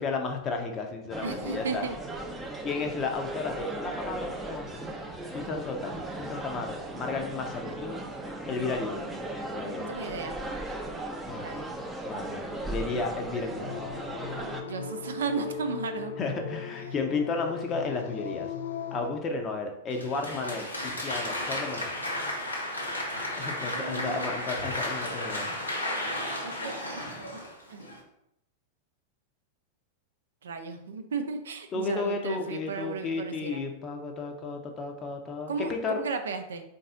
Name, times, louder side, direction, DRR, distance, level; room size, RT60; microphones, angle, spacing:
voice 1, 0.0-1.9 2.6-4.8 5.3-8.0 8.5-9.1 9.5-9.9 11.3-11.6 12.0-13.8 16.2-18.5 18.9-21.9 23.4-25.5 31.7-36.1, left 4 dB, 30° left, 3 dB, 0.7 m, -33 dB
sound 1, 1.1-14.6, right 2 dB, 10° right, 0.5 m, -37 dB
voice 2, 1.2-1.9 9.9-10.4 11.3-11.7 14.6-16.1 23.6-24.3 25.0-25.2 26.4-27.0 27.3-27.4 27.7-27.9 30.4-33.6 35.5-36.6, right 4 dB, 65° right, 7 dB, 0.4 m, -35 dB
sound 2, 13.6-19.1, left 7 dB, 65° left, 0.3 m, -38 dB
Applause, 19.9-28.0, left 1 dB, 80° left, 0.9 m, -33 dB
3.9 x 2.7 x 3.7 m, 0.80 s
figure-of-eight pair, 90°, 0 cm